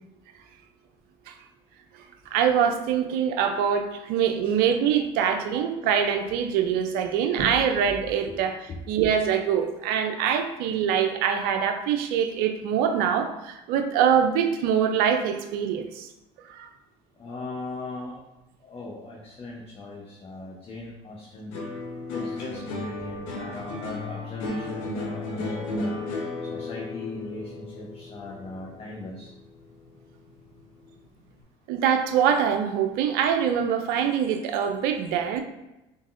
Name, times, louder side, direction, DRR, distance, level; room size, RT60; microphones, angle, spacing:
voice 1, 2.3-8.5 8.9-16.1 16.5-16.7 31.7-35.4, right 8 dB, 70° right, 6 dB, 0.5 m, -24 dB
voice 2, 17.2-18.2 18.6-21.5 22.1-25.9 26.5-29.3, left 2 dB, 40° left, -3 dB, 0.9 m, -39 dB
sound 1, 21.5-30.0 30.3-30.9, left 2 dB, 85° left, 0.9 m, -34 dB
3.9 x 3.5 x 2.5 m, 0.96 s
supercardioid pair, 75°, 16 cm